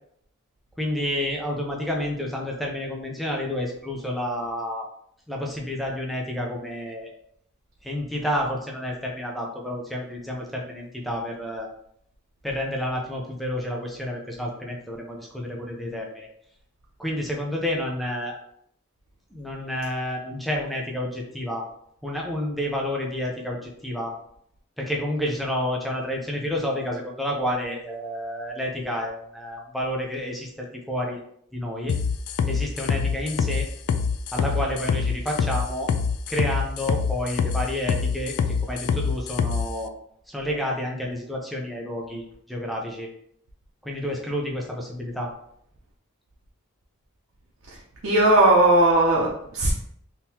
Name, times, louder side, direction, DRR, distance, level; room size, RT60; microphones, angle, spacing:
voice 1, 0.8-4.9 5.3-7.1 7.8-11.7 12.4-16.3 17.0-18.4 19.3-21.7 22.0-24.2 24.8-31.2 31.5-32.0 32.5-33.7 34.3-35.9 36.3-39.9 40.3-43.1 43.8-45.3, left 1 dB, ahead, -1 dB, 0.5 m, -30 dB
sound 1, 31.9-39.7, left 6 dB, 75° left, 0.3 m, -25 dB
voice 2, 48.0-49.7, right 1 dB, 70° right, -3 dB, 0.7 m, -18 dB
3.7 x 2.8 x 2.8 m, 0.69 s
head